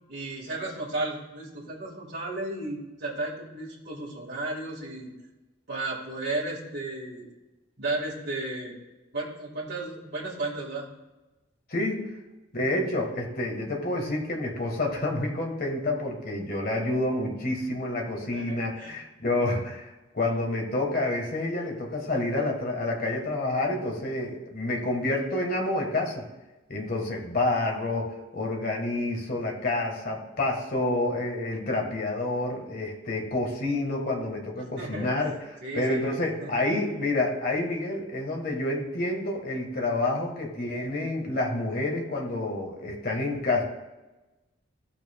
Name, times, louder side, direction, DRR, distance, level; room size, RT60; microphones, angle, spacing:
voice 1, 0.1-5.1 5.7-7.3 7.8-8.7 9.1-10.9 18.2-19.0 34.8-35.1 35.6-36.8, right 2 dB, 60° right, -5 dB, 1.9 m, -34 dB
voice 2, 11.7-12.0 12.5-26.3 26.7-43.6, left 2 dB, 50° left, 1 dB, 1.7 m, -28 dB
15.0 x 5.9 x 2.4 m, 1.1 s
head